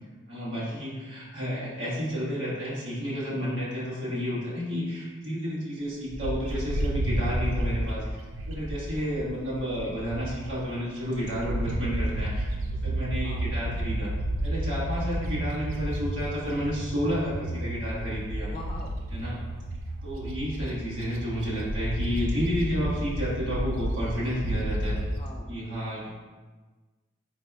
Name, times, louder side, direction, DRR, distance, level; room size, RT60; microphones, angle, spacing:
voice 1, 0.3-8.0 8.5-12.5 12.8-14.1 14.4-18.5 19.1-19.4 20.0-25.0 25.5-26.1, equal, 65° right, -8 dB, 1.4 m, -31 dB
Bird, 6.1-10.6 11.0-25.2, right 1 dB, 85° right, 0.5 m, -31 dB
voice 2, 8.9-9.3 13.2-13.6 18.5-19.0 22.6-22.9 25.2-25.5, left 1 dB, 25° left, 0 dB, 0.4 m, -44 dB
4.3 x 4.1 x 2.3 m, 1.3 s
head